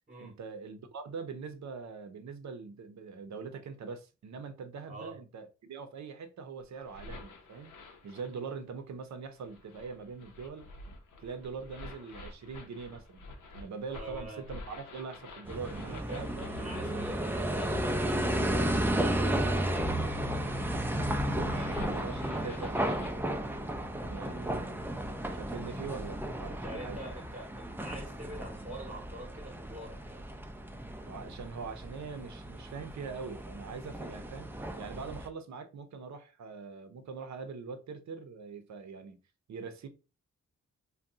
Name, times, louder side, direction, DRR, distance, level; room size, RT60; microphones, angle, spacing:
voice 1, 0.2-7.7 8.0-10.6 11.2-13.2 13.5-16.5 21.2-23.3 23.9-24.8 25.3-27.0 31.1-34.5 34.8-39.2 39.5-39.9, right 5 dB, 65° right, 0.6 m, -43 dB
voice 2, 4.9-5.2 14.0-14.4 15.9-16.2 16.5-20.3 21.5-21.9 26.6-30.3, right 1 dB, 25° right, 0.9 m, -45 dB
sound 1, 6.6-8.6 9.3-23.1, left 2 dB, 85° left, 0.7 m, -49 dB
sound 2, 15.5-35.3, right 1 dB, 5° right, 0.4 m, -33 dB
2.7 x 2.2 x 3.5 m
cardioid pair, 75°, 30 cm